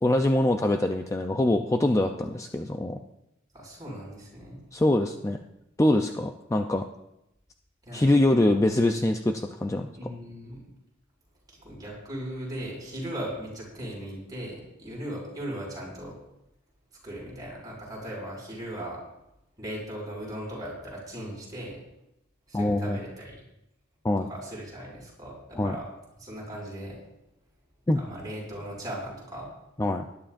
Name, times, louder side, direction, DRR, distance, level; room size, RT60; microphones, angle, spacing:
voice 1, 0.0-3.0 4.7-5.4 5.8-6.9 7.9-9.9 22.5-23.0 24.0-24.3 25.6-25.8 27.9-28.0 29.8-30.0, left 1 dB, 15° left, 4 dB, 0.5 m, -24 dB
voice 2, 3.5-4.6 7.9-8.6 10.0-10.6 11.5-16.1 17.0-19.0 19.6-21.8 22.5-23.4 24.2-25.9 26.2-27.0 27.9-29.5, right 1 dB, 20° right, -4 dB, 5.7 m, -38 dB
19.5 x 11.5 x 2.6 m, 0.88 s
head